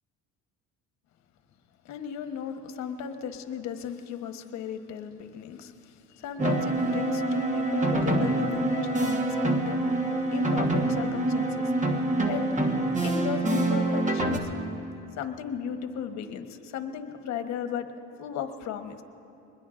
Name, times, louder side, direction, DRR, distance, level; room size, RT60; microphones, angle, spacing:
voice 1, 1.8-11.8 12.3-12.4 13.0-14.5 15.2-17.9 18.2-19.0, left 8 dB, 65° left, 7 dB, 1.1 m, -35 dB
sound 1, 6.4-14.4, right 2 dB, 25° right, 1.3 m, -26 dB
23.0 x 20.5 x 2.5 m, 2.8 s
cardioid pair, 115°, 30 cm